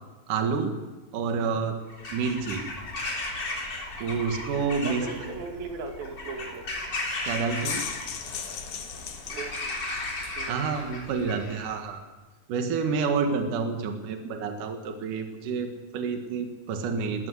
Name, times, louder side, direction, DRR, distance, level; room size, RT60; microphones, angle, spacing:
voice 1, 0.3-0.7 1.1-1.8 2.1-2.6 4.0-5.1 7.2-7.8 10.3-12.0 12.5-17.3, right 5 dB, 65° right, 5 dB, 3.1 m, -29 dB
Bird vocalization bird call bird song / Crow, 1.9-11.8, left 2 dB, 30° left, 3.9 m, -35 dB
voice 2, 4.9-6.7 9.3-9.7 10.4-10.6, right 4 dB, 80° right, 4 dB, 3.7 m, -37 dB
sound 1, 7.4-10.4, left 8 dB, 60° left, 2.7 m, -37 dB
20.0 x 16.0 x 8.1 m, 1.2 s
omnidirectional pair, 4.1 m